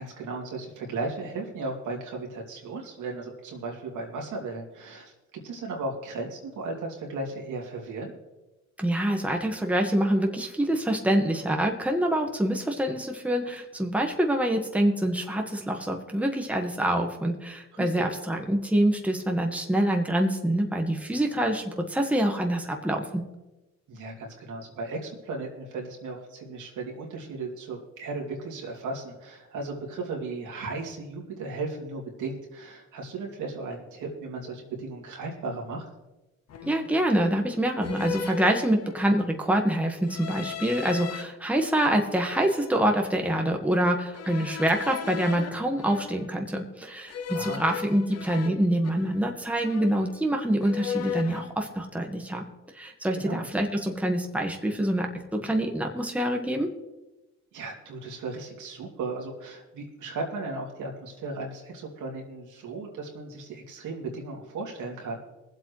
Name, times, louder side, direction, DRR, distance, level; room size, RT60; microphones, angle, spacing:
voice 1, 0.0-8.1 17.7-18.0 23.9-35.9 47.3-47.6 53.1-53.5 57.5-65.2, right 3 dB, 85° right, -1 dB, 2.7 m, -36 dB
voice 2, 8.8-23.2 36.6-52.4 52.7-56.7, right 1 dB, 5° right, 2 dB, 1.5 m, -26 dB
sound 1, 35.4-35.6 36.5-37.0 37.8-39.2 40.0-41.2 41.8-43.3 44.1-46.5 47.1-49.3 49.6-50.3 50.6-51.5, left 8 dB, 55° left, 0.9 m, -37 dB
22.0 x 7.9 x 3.2 m, 1.0 s
cardioid pair, 90°, 30 cm